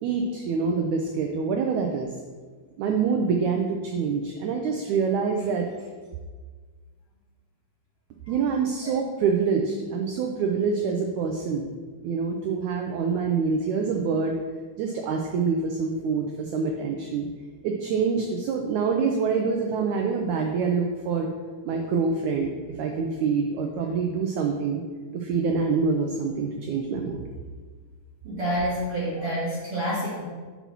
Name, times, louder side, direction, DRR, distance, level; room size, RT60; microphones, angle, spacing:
voice 1, 0.0-2.1 2.8-5.7 8.3-11.7 12.0-14.4 14.8-17.3 17.6-21.3 21.6-22.5 22.8-24.8 25.1-27.2, right 5 dB, 85° right, 2 dB, 1.7 m, -26 dB
voice 2, 28.2-30.2, equal, 50° right, -10 dB, 2.1 m, -28 dB
6.8 x 4.0 x 6.0 m, 1.5 s
omnidirectional pair, 4.0 m